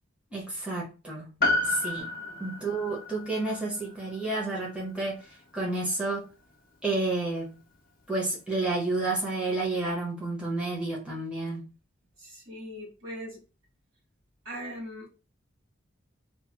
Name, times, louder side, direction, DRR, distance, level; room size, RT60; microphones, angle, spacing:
voice 1, 0.3-1.3 1.6-2.1 2.4-5.3 5.5-6.3 6.8-7.6 8.1-11.7, right 2 dB, 5° right, 1.0 m, -30 dB
Piano, 1.4-6.0 6.3-6.4, left 2 dB, 45° left, 0.6 m, -32 dB
voice 2, 2.2-2.6 12.2-13.4 14.4-15.1, equal, 85° right, 1.6 m, -41 dB
2.9 x 2.2 x 3.3 m
head